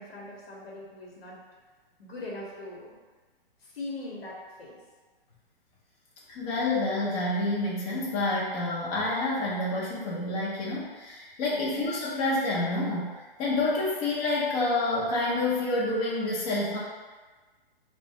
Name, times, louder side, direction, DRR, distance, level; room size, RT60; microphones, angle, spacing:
voice 1, 0.0-1.4 2.0-2.9 3.6-4.7 11.5-11.8, left 2 dB, 80° left, -3 dB, 1.0 m, -41 dB
voice 2, 6.3-13.1 13.4-16.8, left 2 dB, 25° left, -6 dB, 0.6 m, -28 dB
4.3 x 2.1 x 2.8 m, 1.3 s
hypercardioid pair, 145°, 30 cm